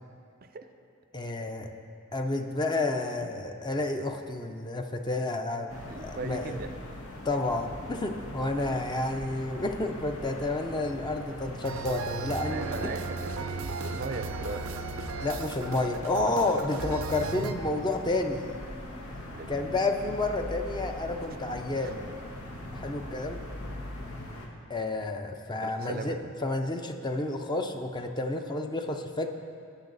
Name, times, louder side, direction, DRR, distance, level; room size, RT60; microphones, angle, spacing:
voice 1, 1.1-1.7 2.1-6.6 7.2-12.9 15.2-18.6 19.5-22.1 22.7-23.4 24.7-29.3, left 2 dB, 20° left, 4 dB, 0.6 m, -30 dB
sound 1, 5.7-24.5, left 1 dB, 85° left, 1.4 m, -41 dB
voice 2, 5.9-6.7 12.5-14.7 19.3-19.7 21.8-22.0 23.6-23.8 25.6-26.2, right 3 dB, 45° right, 8 dB, 0.5 m, -38 dB
sound 2, 11.6-17.5, right 4 dB, 90° right, 0.6 m, -36 dB
18.0 x 6.8 x 4.0 m, 2.3 s
head